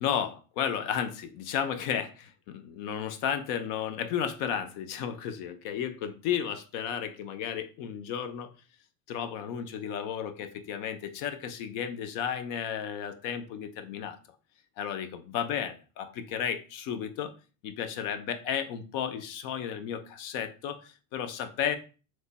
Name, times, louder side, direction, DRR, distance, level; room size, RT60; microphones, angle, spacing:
voice 1, 0.0-8.5 9.1-14.2 14.8-17.3 17.6-21.8, left 8 dB, 70° left, 9 dB, 0.6 m, -33 dB
3.2 x 2.1 x 3.9 m, 0.35 s
cardioid pair, 175°, 43 cm